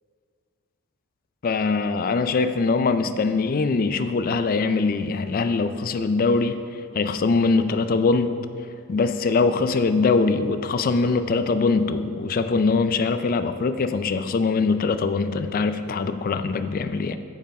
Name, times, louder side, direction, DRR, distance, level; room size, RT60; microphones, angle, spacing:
voice 1, 1.4-8.3 8.9-17.2, left 4 dB, 40° left, 11 dB, 0.3 m, -22 dB
8.8 x 5.5 x 5.2 m, 2.4 s
head